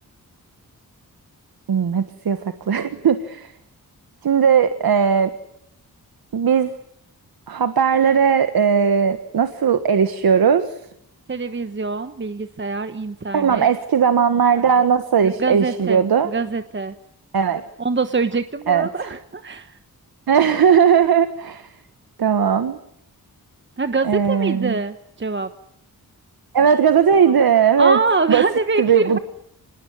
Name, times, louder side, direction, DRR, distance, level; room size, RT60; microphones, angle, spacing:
voice 1, 1.7-2.4 2.7-3.5 4.2-5.3 6.3-6.7 7.5-10.7 13.3-16.3 17.3-17.6 18.7-19.1 20.3-21.7 22.2-22.8 24.0-24.8 26.5-28.0 28.3-28.4 28.8-29.2, right 7 dB, 75° right, 10 dB, 1.5 m, -17 dB
voice 2, 11.3-13.7 15.2-16.9 17.8-19.8 23.8-25.5 27.8-29.2, right 4 dB, 30° right, 9 dB, 1.2 m, -24 dB
26.5 x 20.0 x 9.8 m, 0.76 s
wide cardioid pair, 110°, 36 cm